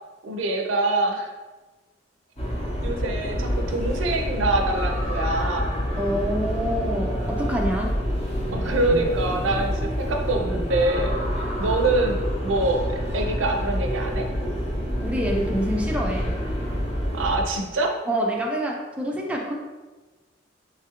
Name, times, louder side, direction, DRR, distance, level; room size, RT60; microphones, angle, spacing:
voice 1, 0.2-1.3 2.8-5.7 8.5-14.3 17.1-17.9, right 2 dB, 90° right, 3 dB, 0.4 m, -25 dB
sound 1, 2.4-17.4, equal, 35° left, 0.7 m, -27 dB
voice 2, 6.0-8.0 15.0-16.3 18.1-19.5, equal, 5° right, -1 dB, 0.3 m, -26 dB
3.2 x 2.4 x 2.8 m, 1.2 s
head